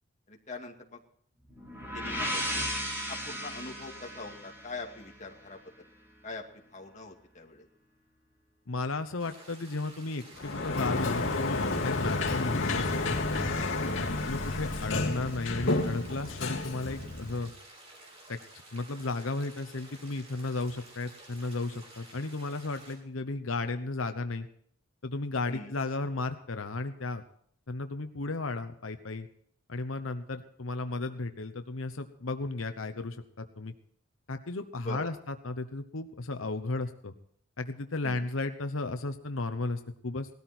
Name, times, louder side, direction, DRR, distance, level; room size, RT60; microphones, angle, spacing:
voice 1, 0.3-1.0 1.9-2.7 3.1-5.9 6.2-7.7 14.0-14.3 25.5-25.7 34.8-35.1 38.0-38.3, left 2 dB, 35° left, 2 dB, 2.3 m, -43 dB
sound 1, 1.5-5.3, equal, 10° right, 4.9 m, -35 dB
voice 2, 8.7-13.2 14.0-17.5 18.3-18.4 18.7-24.5 25.0-27.2 27.7-29.3 29.7-33.7 34.3-37.1 37.6-40.3, left 3 dB, 80° left, 8 dB, 1.0 m, -34 dB
sound 2, 9.2-22.9, right 1 dB, 30° right, 5.4 m, -52 dB
Sliding door, 10.4-17.5, left 2 dB, 65° left, 2.7 m, -31 dB
18.5 x 13.5 x 4.4 m, 0.64 s
head